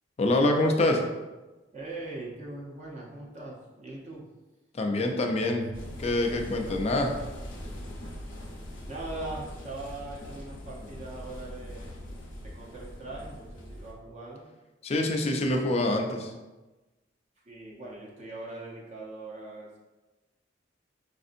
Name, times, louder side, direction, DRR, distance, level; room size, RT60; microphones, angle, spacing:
voice 1, 0.2-1.0 4.7-5.7 6.0-7.1 14.8-16.3, left 1 dB, 35° left, 2 dB, 0.4 m, -25 dB
voice 2, 1.7-4.3 8.9-12.1 12.4-14.5 17.5-19.8, right 2 dB, 35° right, -4 dB, 0.6 m, -41 dB
sound 1, 5.7-13.9, equal, 75° left, 0.7 m, -41 dB
5.1 x 2.6 x 2.5 m, 1.1 s
head